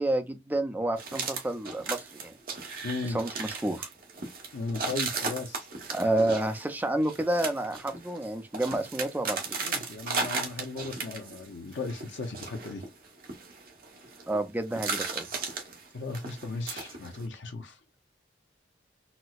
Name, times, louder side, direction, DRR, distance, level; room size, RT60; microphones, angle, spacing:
voice 1, 0.0-2.3 3.0-3.9 5.9-9.4 14.3-15.3, right 1 dB, 10° right, 0.4 m, -29 dB
sound 1, 1.0-11.5 11.7-14.4 14.7-17.3, right 4 dB, 50° right, 0.9 m, -36 dB
voice 2, 2.8-3.2 4.5-5.7 9.6-12.8 15.6-17.8, left 3 dB, 85° left, 0.6 m, -36 dB
4.2 x 2.0 x 2.3 m
head